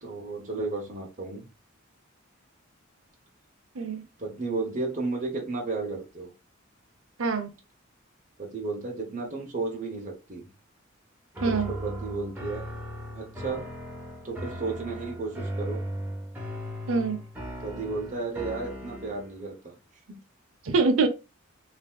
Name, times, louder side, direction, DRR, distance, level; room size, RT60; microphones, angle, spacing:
voice 1, 0.0-1.5 4.2-6.3 8.4-10.5 11.4-12.6 13.1-13.7 14.2-15.8 17.6-19.7 20.1-20.2, right 3 dB, 40° right, 0.8 m, -33 dB
voice 2, 7.2-7.5 11.4-11.7 16.9-17.2 20.6-21.1, right 4 dB, 75° right, 0.6 m, -24 dB
sound 1, 11.3-19.4, equal, 10° right, 0.9 m, -37 dB
3.3 x 2.6 x 2.2 m
head